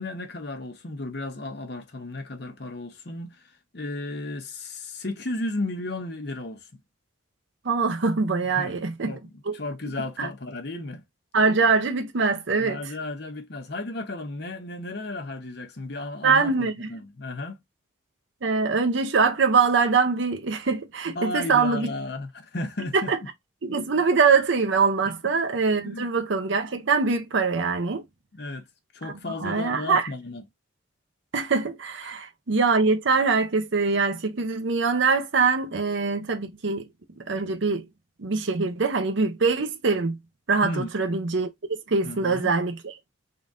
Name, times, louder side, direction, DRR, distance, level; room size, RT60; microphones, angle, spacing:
voice 1, 0.0-6.7 8.5-8.8 9.0-9.2 9.5-11.0 12.6-17.6 21.1-23.1 25.1-25.2 25.8-26.1 28.3-28.6 28.9-30.4 32.0-32.2 40.6-40.9 42.0-42.5, left 2 dB, 55° left, 0.9 m, -34 dB
voice 2, 7.6-9.1 9.5-9.6 10.2-10.3 11.3-12.8 16.2-16.9 18.4-21.9 22.9-23.2 23.6-28.0 29.0-29.1 29.4-30.1 31.3-36.9 37.2-37.9 38.2-40.2 40.5-42.9, right 4 dB, 65° right, 0.7 m, -23 dB
3.8 x 2.6 x 3.6 m
head